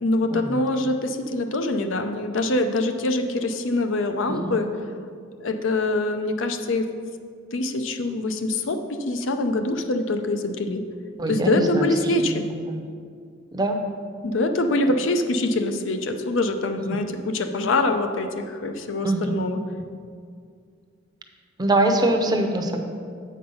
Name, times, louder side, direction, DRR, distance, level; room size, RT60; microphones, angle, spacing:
voice 1, 0.0-4.7 5.4-6.9 7.5-10.8 11.3-12.4 14.2-19.6 22.2-22.4, left 2 dB, 80° left, 7 dB, 0.6 m, -24 dB
voice 2, 11.2-12.4 12.7-12.8 13.5-13.8 16.8-17.0 19.0-19.3 21.6-22.8, right 1 dB, 20° right, 4 dB, 0.6 m, -24 dB
7.8 x 5.3 x 5.4 m, 2.2 s
head